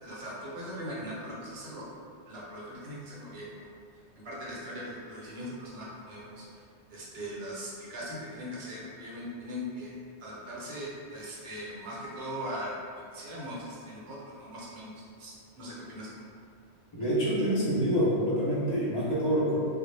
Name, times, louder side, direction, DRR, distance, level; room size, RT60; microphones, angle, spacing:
voice 1, 0.0-1.9 2.3-3.7 4.2-6.4 6.9-9.9 10.2-12.8 13.1-16.1, equal, 65° right, -6 dB, 0.9 m, -40 dB
voice 2, 16.9-19.6, equal, 35° left, -8 dB, 0.4 m, -26 dB
2.0 x 2.0 x 3.1 m, 2.2 s
omnidirectional pair, 1.2 m